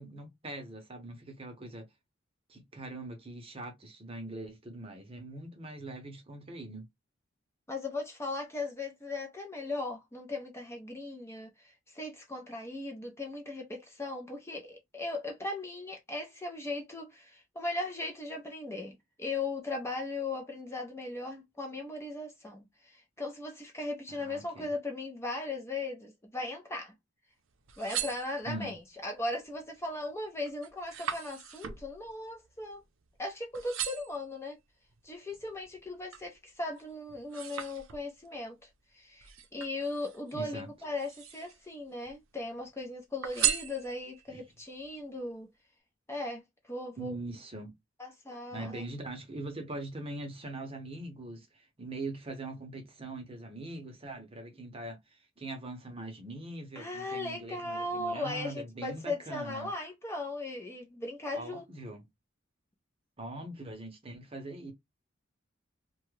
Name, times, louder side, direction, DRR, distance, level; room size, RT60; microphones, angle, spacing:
voice 1, 0.0-1.9 2.5-6.9 24.1-24.7 28.5-28.8 40.3-40.7 44.3-44.4 47.0-47.7 48.5-59.7 61.3-62.0 63.2-64.7, right 2 dB, 30° right, 0.8 m, -42 dB
voice 2, 7.7-26.9 27.8-32.8 33.2-34.6 35.0-38.7 38.9-45.5 46.1-47.2 48.0-48.8 56.8-61.6, left 2 dB, 15° left, 0.6 m, -38 dB
sound 1, 27.5-28.8 29.4-29.8 30.1-33.2 33.5-34.2 34.9-36.3 36.8-38.3 39.2-40.3 40.9-41.7 42.0-42.7 43.2-44.3 44.8-44.9, right 10 dB, 75° right, 0.6 m, -37 dB
2.8 x 2.3 x 3.2 m
head